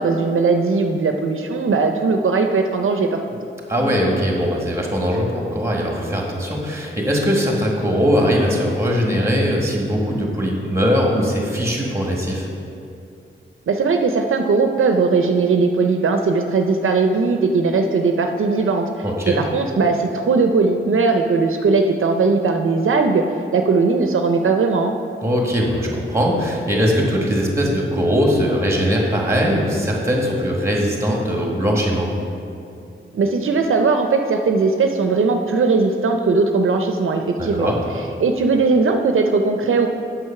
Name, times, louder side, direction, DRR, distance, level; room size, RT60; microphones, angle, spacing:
voice 1, 0.0-3.4 13.7-23.2 23.5-25.0 33.1-37.7 38.2-39.9, right 4 dB, 75° right, 5 dB, 0.5 m, -19 dB
voice 2, 3.7-12.5 19.0-19.4 25.2-32.1 37.4-37.8, equal, 15° right, -1 dB, 1.6 m, -20 dB
7.9 x 6.0 x 5.7 m, 2.6 s
wide cardioid pair, 100°, 21 cm